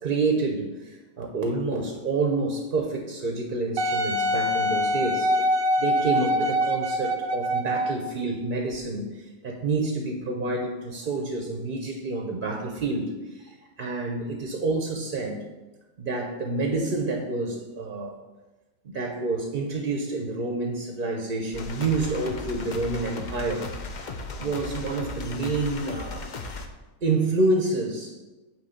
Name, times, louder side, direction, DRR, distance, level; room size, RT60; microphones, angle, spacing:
voice 1, 0.0-15.4 16.0-18.2 18.8-23.7 24.4-26.3 27.0-28.1, right 3 dB, 45° right, 2 dB, 0.7 m, -28 dB
Wind instrument woodwind instrument, 3.8-8.1 8.7-8.8, equal, 70° right, 1.0 m, -24 dB
sound 1, 21.5-26.7, left 3 dB, 50° left, 0.5 m, -36 dB
9.0 x 3.1 x 6.5 m, 1.1 s
omnidirectional pair, 1.5 m